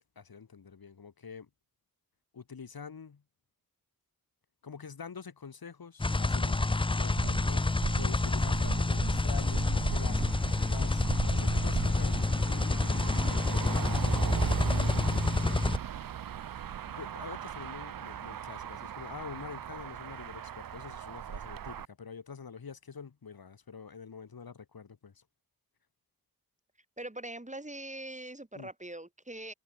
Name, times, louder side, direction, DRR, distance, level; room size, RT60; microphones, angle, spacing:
voice 1, 0.0-1.5 2.3-3.2 4.6-13.7 14.0-15.3 17.0-25.2 28.5-28.7, left 6 dB, 85° left, 2.7 m, -46 dB
sound 1, 6.0-15.8, left 2 dB, 15° left, 0.5 m, -28 dB
Motor vehicle (road), 7.2-21.9, right 9 dB, 70° right, 0.6 m, -38 dB
voice 2, 27.0-29.5, right 1 dB, 20° right, 4.9 m, -42 dB
wide cardioid pair, 65°, 35 cm